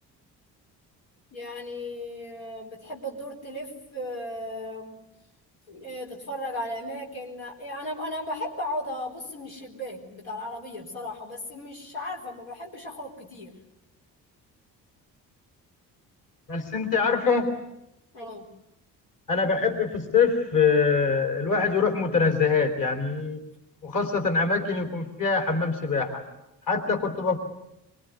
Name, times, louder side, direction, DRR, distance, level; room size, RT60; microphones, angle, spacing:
voice 1, 1.3-5.0 5.7-13.6 18.1-18.5, left 1 dB, 70° left, -1 dB, 4.2 m, -36 dB
voice 2, 16.5-17.5 19.3-23.4 23.8-26.2 26.7-27.4, left 5 dB, 40° left, 5 dB, 3.9 m, -24 dB
24.5 x 24.5 x 9.5 m, 0.85 s
figure-of-eight pair, 45°, 49 cm